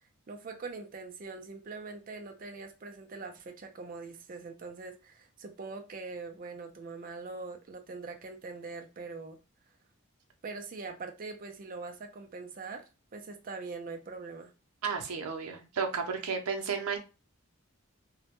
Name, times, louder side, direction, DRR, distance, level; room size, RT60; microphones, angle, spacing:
voice 1, 0.3-9.4 10.4-14.5, right 4 dB, 40° right, 0.4 m, -42 dB
voice 2, 14.8-17.0, right 5 dB, 85° right, 0.5 m, -33 dB
2.1 x 2.0 x 2.9 m
head